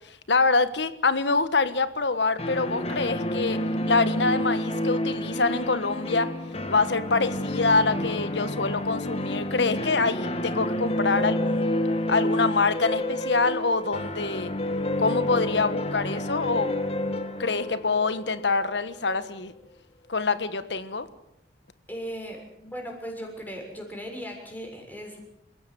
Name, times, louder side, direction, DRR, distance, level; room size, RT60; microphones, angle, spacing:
voice 1, 0.3-3.6 3.9-6.3 6.7-11.7 12.1-14.5 15.0-16.7 17.4-19.5 20.1-21.1, left 4 dB, 75° left, 12 dB, 1.4 m, -25 dB
sound 1, 2.4-19.1, left 1 dB, 35° left, 1.8 m, -29 dB
voice 2, 21.9-25.2, equal, 10° left, 1 dB, 6.9 m, -37 dB
28.5 x 16.5 x 8.1 m, 0.78 s
head